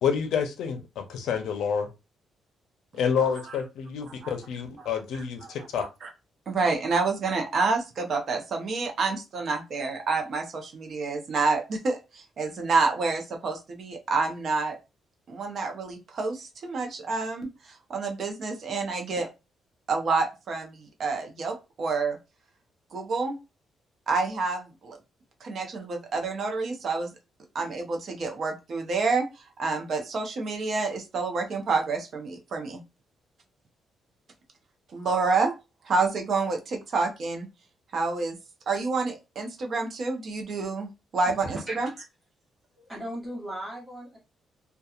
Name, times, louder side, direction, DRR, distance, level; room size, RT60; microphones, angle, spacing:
voice 1, 0.0-1.9 2.9-5.8, left 7 dB, 85° left, 0.5 m, -28 dB
voice 2, 5.1-5.5 6.0-6.1 6.5-14.8 15.3-19.3 19.9-22.2 22.9-23.4 24.1-25.0 25.4-27.1 27.5-29.3 29.6-32.8 34.9-35.5 35.8-37.5 37.9-38.4 38.7-41.9, right 4 dB, 45° right, 0.6 m, -28 dB
voice 3, 41.2-41.8 42.8-44.2, right 1 dB, 15° right, 1.1 m, -37 dB
2.8 x 2.2 x 2.3 m
cardioid pair, 150°, 0 cm